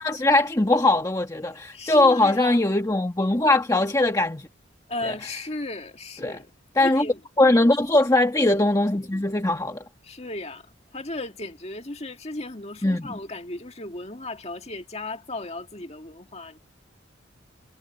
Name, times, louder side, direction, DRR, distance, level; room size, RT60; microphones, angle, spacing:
voice 1, 0.0-4.5 5.1-5.2 6.2-6.4 6.8-7.0 7.4-9.8 12.8-13.1, left 2 dB, 15° left, 1.3 m, -21 dB
voice 2, 1.7-2.6 4.9-6.5 6.8-7.2 10.0-16.6, left 2 dB, 35° left, 2.0 m, -35 dB
head